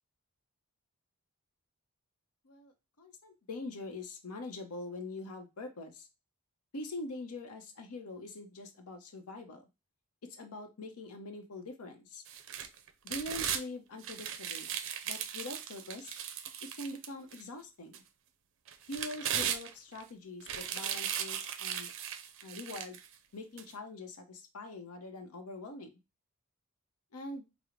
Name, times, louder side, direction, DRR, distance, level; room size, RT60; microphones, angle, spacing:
voice 1, 2.4-6.1 6.7-9.6 10.2-12.2 13.0-14.7 15.0-16.2 16.8-18.0 18.9-21.9 22.4-23.0 23.3-26.0 27.1-27.5, left 2 dB, 80° left, 5 dB, 0.7 m, -44 dB
sound 1, 12.3-13.6 14.0-17.4 17.9-18.0 18.7-20.0 20.4-23.1 23.6-23.7, right 9 dB, 60° right, 0.4 m, -37 dB
4.9 x 2.0 x 2.9 m, 0.26 s
head